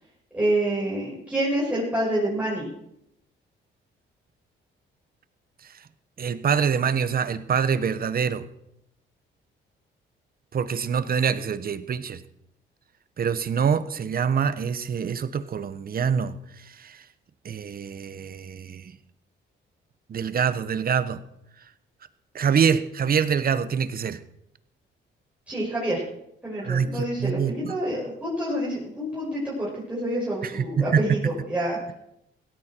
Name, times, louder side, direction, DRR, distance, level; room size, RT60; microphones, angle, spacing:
voice 1, 0.3-2.7 25.5-26.0 26.4-31.8, right 1 dB, 5° right, -7 dB, 6.4 m, -27 dB
voice 2, 6.2-8.4 10.5-12.2 13.2-17.0 17.4-18.9 20.1-21.2 22.3-24.2 26.6-27.8 30.4-31.2, right 7 dB, 50° right, 13 dB, 1.2 m, -25 dB
17.0 x 13.5 x 4.6 m, 0.78 s
cardioid pair, 90°, 20 cm